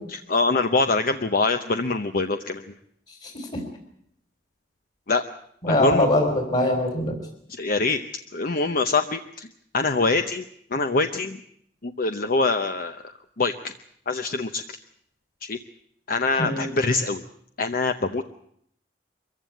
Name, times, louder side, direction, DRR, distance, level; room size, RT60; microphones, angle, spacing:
voice 1, 0.1-2.6 5.1-5.2 5.7-6.1 7.5-8.0 8.3-9.5 9.7-10.4 10.7-11.4 11.8-13.0 13.4-13.7 14.1-14.8 15.4-15.6 16.1-17.2 17.6-18.2, left 3 dB, 55° left, 8 dB, 0.9 m, -24 dB
voice 2, 3.2-3.6 5.6-7.2 16.4-16.7, left 1 dB, 40° left, 3 dB, 3.8 m, -23 dB
23.0 x 15.0 x 9.2 m, 0.69 s
head